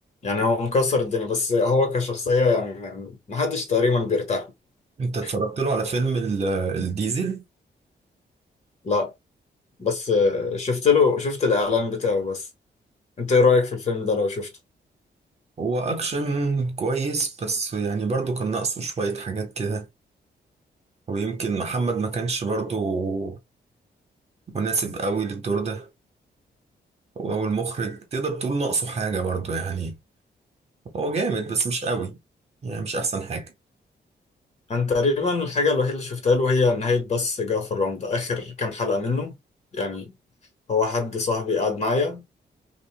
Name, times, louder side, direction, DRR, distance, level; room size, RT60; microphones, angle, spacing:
voice 1, 0.2-4.5 8.8-9.1 9.8-12.4 13.2-14.5 34.7-39.4 39.7-40.1 40.7-42.3, left 4 dB, 40° left, 1.5 m, -23 dB
voice 2, 5.0-7.4 15.6-19.8 21.1-23.4 24.5-25.9 27.2-30.0 30.9-32.2 32.6-33.5, right 4 dB, 35° right, 1.2 m, -26 dB
5.4 x 2.5 x 2.3 m
wide cardioid pair, 170°, 18 cm